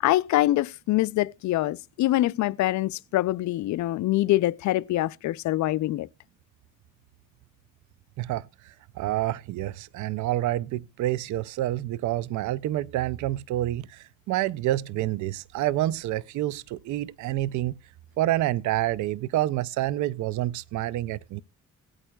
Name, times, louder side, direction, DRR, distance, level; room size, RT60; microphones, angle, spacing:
voice 1, 0.0-6.1, left 16 dB, 70° left, 0.5 m, -24 dB
voice 2, 8.2-17.7 18.2-21.4, right 14 dB, 75° right, 0.5 m, -28 dB
17.5 x 8.7 x 2.2 m
cardioid pair, 90°, 30 cm